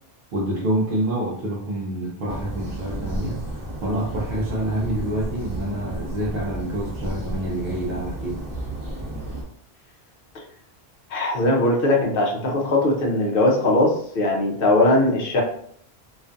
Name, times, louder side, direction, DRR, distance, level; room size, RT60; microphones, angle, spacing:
voice 1, 0.3-3.4 3.8-8.4, right 1 dB, 65° right, -5 dB, 0.7 m, -27 dB
sound 1, 2.3-9.4, right 1 dB, 20° right, 0.7 m, -32 dB
voice 2, 11.1-15.4, left 1 dB, 65° left, -1 dB, 0.7 m, -20 dB
2.4 x 2.3 x 2.4 m, 0.64 s
omnidirectional pair, 1.1 m